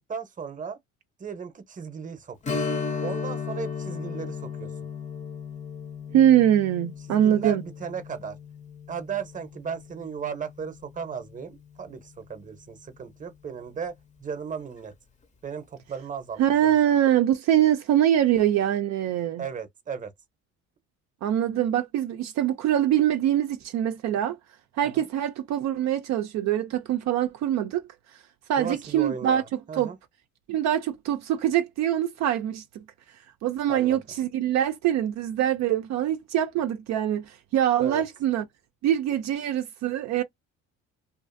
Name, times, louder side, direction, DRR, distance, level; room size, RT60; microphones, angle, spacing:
voice 1, 0.1-0.8 1.2-2.6 3.0-4.7 7.1-8.4 8.9-13.9 14.2-14.9 15.4-16.7 19.4-20.1 24.8-25.1 28.6-30.0 33.7-34.0 37.8-38.0, right 6 dB, 25° right, 0.7 m, -36 dB
Strum, 2.4-11.6 12.0-12.1 14.6-14.8 15.2-15.3, left 5 dB, 25° left, 0.6 m, -35 dB
voice 2, 6.1-7.6 16.4-19.4 21.2-24.4 24.8-27.8 28.1-28.2 28.5-29.4 29.7-29.9 30.5-32.6 33.4-38.4 38.8-40.2, right 11 dB, 65° right, 0.4 m, -23 dB
2.5 x 2.4 x 2.5 m
cardioid pair, 105°, 30 cm